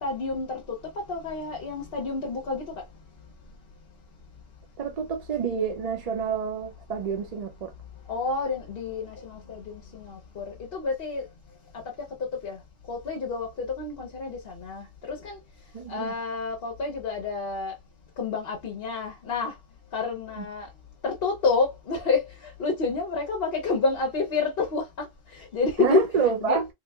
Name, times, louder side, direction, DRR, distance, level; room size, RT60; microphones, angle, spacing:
voice 1, 0.0-0.6 1.1-2.6 8.1-11.2 12.4-12.6 12.9-15.4 15.9-17.7 18.2-19.5 19.9-20.7 21.0-25.1 25.3-26.0 26.4-26.6, left 4 dB, 60° left, 0.9 m, -29 dB
voice 2, 4.8-7.7 15.7-16.1 20.4-20.5 25.8-26.7, right 6 dB, 50° right, 0.4 m, -28 dB
3.4 x 2.9 x 2.2 m
omnidirectional pair, 1.2 m